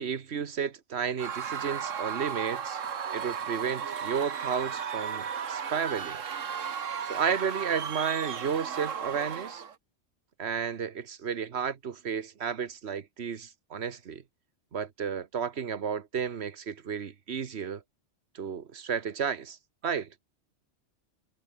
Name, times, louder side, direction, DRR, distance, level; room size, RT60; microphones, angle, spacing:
voice 1, 0.0-2.8 3.1-6.2 7.0-9.6 10.4-14.2 14.7-17.8 18.3-19.6 19.8-20.1, right 7 dB, 60° right, 1.4 m, -32 dB
Screaming / Cheering / Crowd, 1.2-9.7, right 7 dB, 80° right, 1.6 m, -35 dB
omnidirectional pair, 1.3 m